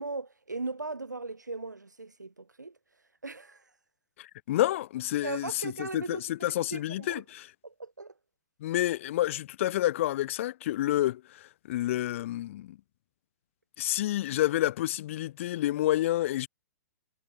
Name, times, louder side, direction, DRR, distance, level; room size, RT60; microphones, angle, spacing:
voice 1, 0.0-2.7 3.2-3.6 5.2-7.2 7.6-8.1, right 3 dB, 80° right, 4.2 m, -38 dB
voice 2, 4.2-7.5 8.6-12.8 13.8-16.5, left 14 dB, 45° left, 2.0 m, -29 dB
figure-of-eight pair, 115°, 10 cm